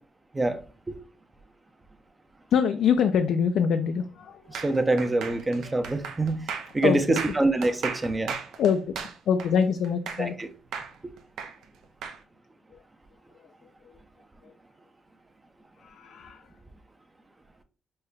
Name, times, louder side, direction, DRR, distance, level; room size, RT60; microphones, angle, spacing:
voice 1, 2.5-4.7 5.7-5.8 6.8-7.2 8.4-8.9 9.3-10.4 12.7-12.8 13.8-14.0 14.4-14.5 15.8-16.5, left 7 dB, 70° left, 7 dB, 0.3 m, -25 dB
voice 2, 4.5-6.4 6.7-8.3 10.2-10.5, right 2 dB, 20° right, 7 dB, 0.5 m, -25 dB
sound 1, 4.5-10.4 10.7-12.2, right 6 dB, 80° right, 0.6 m, -36 dB
5.4 x 2.2 x 3.4 m, 0.36 s
cardioid pair, 90°, 0 cm